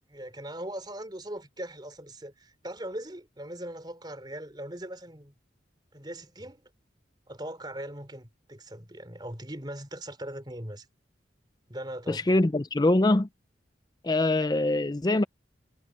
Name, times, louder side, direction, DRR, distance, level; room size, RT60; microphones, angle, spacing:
voice 1, 0.1-5.3 5.9-6.6 7.3-10.9 11.7-12.4, right 1 dB, 25° right, 3.7 m, -40 dB
voice 2, 12.1-13.3 14.0-15.2, left 2 dB, 20° left, 0.5 m, -23 dB
head